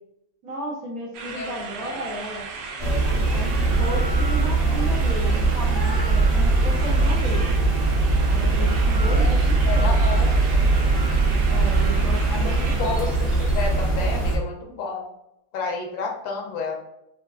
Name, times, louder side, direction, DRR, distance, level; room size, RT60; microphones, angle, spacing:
voice 1, 0.4-2.4 3.2-7.6 8.3-10.1 11.5-13.0, equal, 55° right, -4 dB, 1.2 m, -34 dB
sound 1, 1.1-13.9, right 3 dB, 80° right, 1.4 m, -36 dB
sound 2, 2.8-14.4, right 3 dB, 25° right, 0.7 m, -21 dB
voice 2, 9.0-10.6 12.2-15.1 15.5-16.7, left 4 dB, 75° left, 0 dB, 1.4 m, -31 dB
4.6 x 2.5 x 2.4 m, 0.84 s
omnidirectional pair, 2.2 m